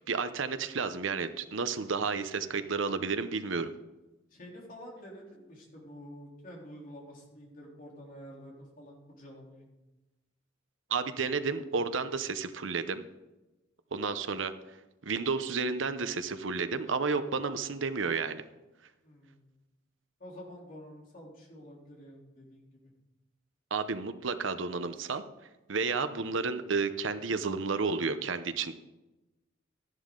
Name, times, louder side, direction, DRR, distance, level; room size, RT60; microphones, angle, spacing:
voice 1, 0.1-3.7 10.9-13.0 13.9-14.5 15.0-18.4 23.7-25.2 25.7-28.7, right 4 dB, 80° right, 10 dB, 0.8 m, -31 dB
voice 2, 4.3-9.6 19.0-19.5 20.2-22.8, equal, 45° left, -2 dB, 3.5 m, -49 dB
13.0 x 11.0 x 3.8 m, 1.0 s
head